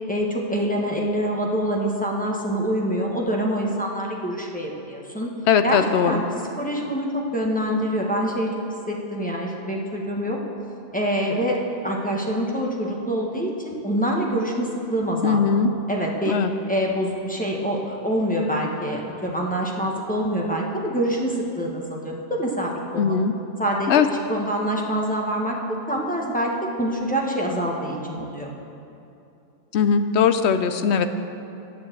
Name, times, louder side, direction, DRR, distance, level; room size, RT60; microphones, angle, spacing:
voice 1, 0.1-5.3 5.6-6.2 6.6-8.5 8.9-10.4 10.9-11.6 11.8-15.6 15.9-16.4 16.7-23.2 23.6-24.0 24.3-25.6 25.9-26.5 26.8-28.5, equal, 5° left, -2 dB, 1.2 m, -25 dB
voice 2, 5.5-6.2 15.2-15.7 16.3-16.5 23.0-23.3 23.9-24.1 29.7-31.1, left 6 dB, 65° left, 10 dB, 0.7 m, -19 dB
11.0 x 6.9 x 8.0 m, 2.7 s
omnidirectional pair, 1.5 m